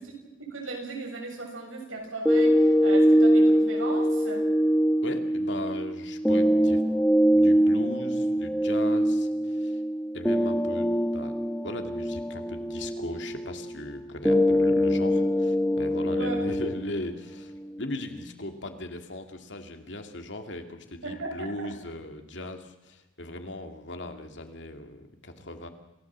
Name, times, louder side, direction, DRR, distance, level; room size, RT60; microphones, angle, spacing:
voice 1, 0.5-4.5 16.1-16.6 21.0-21.3 21.6-21.7, right 3 dB, 90° right, 1 dB, 7.2 m, -36 dB
sound 1, 2.3-18.3, equal, 5° left, 1.7 m, -24 dB
voice 2, 5.0-6.9 7.3-9.8 10.1-11.4 11.6-25.7, left 1 dB, 65° left, 6 dB, 2.5 m, -38 dB
28.0 x 16.5 x 7.5 m, 0.98 s
head